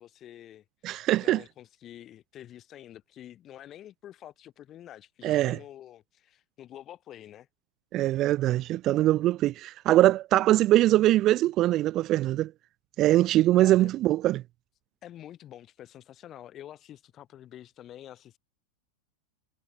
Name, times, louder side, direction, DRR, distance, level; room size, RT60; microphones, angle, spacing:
voice 1, 0.0-7.5 13.6-13.9 15.0-18.4, left 12 dB, 30° left, 3.6 m, -47 dB
voice 2, 0.8-1.4 5.2-5.6 7.9-12.5 13.0-14.4, right 15 dB, 35° right, 0.4 m, -22 dB
figure-of-eight pair, 90°, 0 cm